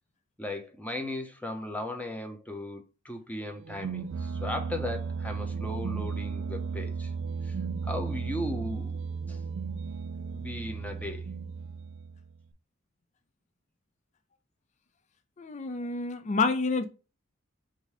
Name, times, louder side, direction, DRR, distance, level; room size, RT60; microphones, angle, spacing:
voice 1, 0.4-7.1 7.4-7.6 7.8-9.0 9.3-9.4 10.3-11.2, left 1 dB, 10° left, 0.8 m, -37 dB
sound 1, 3.6-12.4, right 5 dB, 80° right, 0.4 m, -35 dB
voice 2, 15.4-16.8, left 4 dB, 35° left, 0.4 m, -28 dB
3.7 x 2.7 x 4.7 m
head